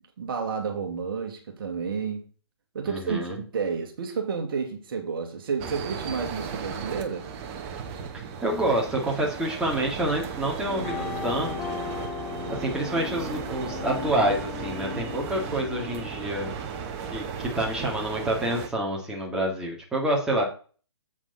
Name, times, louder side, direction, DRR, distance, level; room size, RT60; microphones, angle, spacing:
voice 1, 0.2-2.2 2.7-7.3, right 5 dB, 50° right, 2.0 m, -31 dB
voice 2, 2.8-3.4 8.4-11.8 12.5-16.5 17.1-20.4, right 1 dB, 5° right, 2.2 m, -28 dB
sound 1, 5.6-18.7, right 6 dB, 25° right, 1.2 m, -36 dB
sound 2, 10.7-16.3, left 7 dB, 20° left, 1.0 m, -37 dB
7.8 x 7.2 x 4.1 m
figure-of-eight pair, 135°, 15 cm